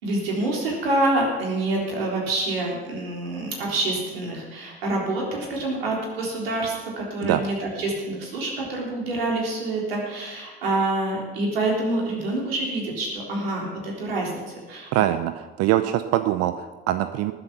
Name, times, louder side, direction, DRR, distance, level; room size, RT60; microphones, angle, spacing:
voice 1, 0.0-14.9, right 2 dB, 80° right, -2 dB, 3.7 m, -27 dB
voice 2, 14.9-17.3, right 13 dB, 55° right, 10 dB, 0.8 m, -23 dB
18.5 x 7.9 x 6.0 m, 1.2 s
hypercardioid pair, 60°, 29 cm